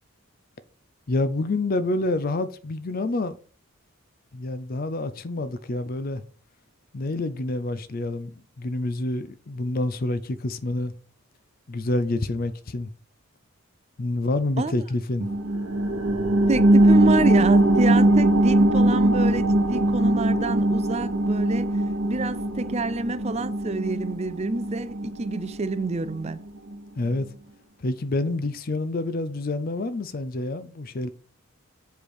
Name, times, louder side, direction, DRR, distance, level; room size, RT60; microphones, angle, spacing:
voice 1, 1.1-3.4 4.3-6.2 6.9-10.9 11.7-12.9 14.0-15.3 27.0-27.3 27.8-31.1, left 2 dB, 45° left, 0.5 m, -27 dB
sound 1, 15.2-26.3 26.7-26.8, right 1 dB, 60° right, 1.1 m, -21 dB
voice 2, 16.5-21.8 22.1-26.4, right 3 dB, 30° right, 0.5 m, -28 dB
7.6 x 3.4 x 6.3 m
head